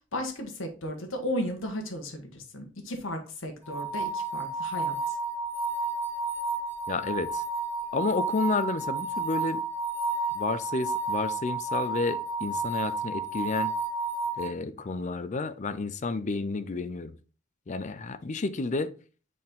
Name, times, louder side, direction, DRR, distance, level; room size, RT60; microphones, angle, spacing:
voice 1, 0.1-5.2, left 1 dB, 75° left, 1.4 m, -35 dB
sound 1, 3.6-14.5, right 3 dB, 10° right, 1.6 m, -31 dB
voice 2, 6.9-7.4 7.9-9.6 10.3-13.7 14.4-17.1 17.7-18.9, left 3 dB, 35° left, 0.5 m, -31 dB
6.4 x 4.2 x 3.6 m
head